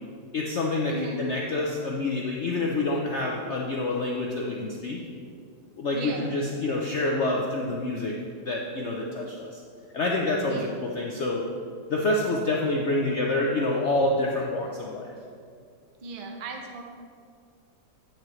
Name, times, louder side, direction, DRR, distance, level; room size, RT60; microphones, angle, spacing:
voice 1, 0.3-5.0 5.8-8.1 8.4-9.6 9.9-11.4 11.9-15.1, left 2 dB, 75° left, -1 dB, 0.6 m, -27 dB
voice 2, 0.9-1.2 5.9-6.3 10.5-10.7 16.0-16.8, right 2 dB, 45° right, 1 dB, 0.6 m, -36 dB
9.2 x 7.4 x 3.1 m, 2.2 s
omnidirectional pair, 2.0 m